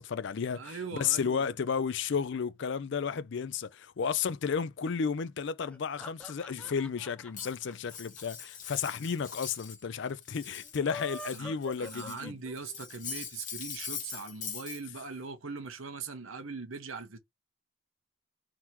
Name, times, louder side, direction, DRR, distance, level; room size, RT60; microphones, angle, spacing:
voice 1, 0.0-12.4, left 6 dB, 55° left, 0.4 m, -33 dB
voice 2, 0.5-1.5 11.3-17.2, right 4 dB, 70° right, 1.0 m, -41 dB
sound 1, 5.6-9.0 9.3-9.4 9.6-9.7 10.6-12.8, left 2 dB, 5° left, 0.5 m, -45 dB
Cutlery silverware, 7.3-9.8 10.1-12.2 12.6-14.8, left 7 dB, 35° left, 0.9 m, -42 dB
3.7 x 2.9 x 4.5 m
head